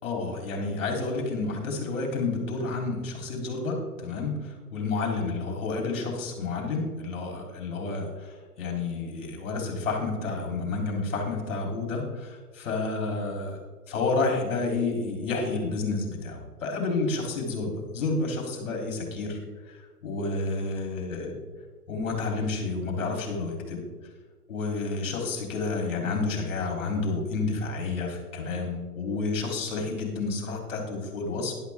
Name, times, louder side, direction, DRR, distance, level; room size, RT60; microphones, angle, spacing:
voice 1, 0.0-13.6 13.9-19.4 19.7-21.3 21.9-23.8 24.5-31.5, left 3 dB, 50° left, 1 dB, 3.5 m, -30 dB
11.5 x 11.0 x 3.6 m, 1.4 s
figure-of-eight pair, 130°, 48 cm